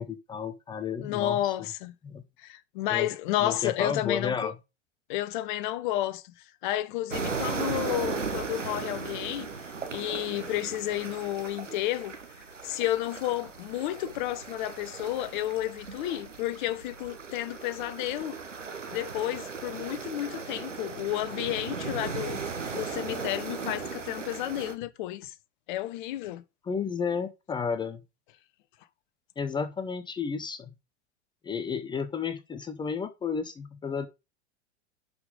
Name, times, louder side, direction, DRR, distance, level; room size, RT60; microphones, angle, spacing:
voice 1, 0.0-1.5 2.0-2.2 2.9-3.1 3.4-4.5 26.7-28.0 29.4-30.7 31.4-34.1, left 6 dB, 10° left, 0.8 m, -32 dB
voice 2, 1.0-1.9 2.4-4.5 5.1-9.5 9.9-12.1 12.6-18.4 18.9-22.4 22.7-25.3 25.7-26.4, left 14 dB, 40° left, 1.0 m, -31 dB
sound 1, 7.1-24.7, right 5 dB, 80° right, 1.4 m, -37 dB
10.5 x 5.3 x 3.8 m
figure-of-eight pair, 95°, 36 cm